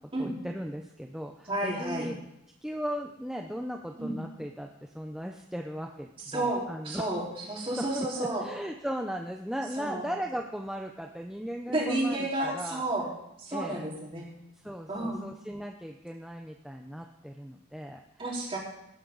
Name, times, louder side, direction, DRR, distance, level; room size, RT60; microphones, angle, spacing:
voice 1, 0.2-2.2 2.6-7.1 7.7-8.1 8.4-12.8 13.5-13.8 14.5-18.0, equal, 5° right, 2 dB, 0.6 m, -37 dB
voice 2, 1.5-2.1 4.0-4.1 6.3-7.2 7.5-8.4 9.8-10.0 11.7-13.1 13.4-14.3 14.9-15.2 18.2-18.6, right 1 dB, 25° right, -5 dB, 4.3 m, -31 dB
19.5 x 10.5 x 4.0 m, 0.83 s
head